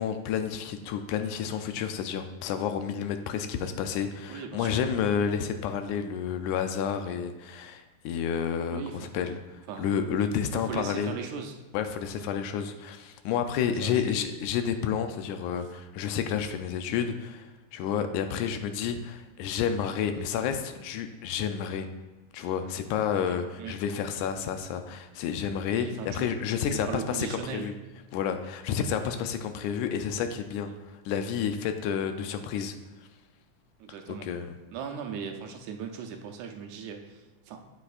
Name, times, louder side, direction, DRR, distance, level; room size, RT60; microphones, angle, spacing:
voice 1, 0.0-9.4 9.8-11.1 11.7-21.9 22.3-27.7 28.1-32.8 34.1-34.6, left 7 dB, 85° left, 7 dB, 2.0 m, -30 dB
voice 2, 4.3-4.9 8.7-9.1 9.7-9.9 10.5-11.6 12.2-12.3 13.7-14.4 23.1-23.8 25.7-26.3 26.6-27.8 30.7-30.8 33.8-34.3 34.7-37.6, right 7 dB, 80° right, 4 dB, 1.9 m, -38 dB
8.5 x 7.9 x 2.4 m, 1.2 s
omnidirectional pair, 3.4 m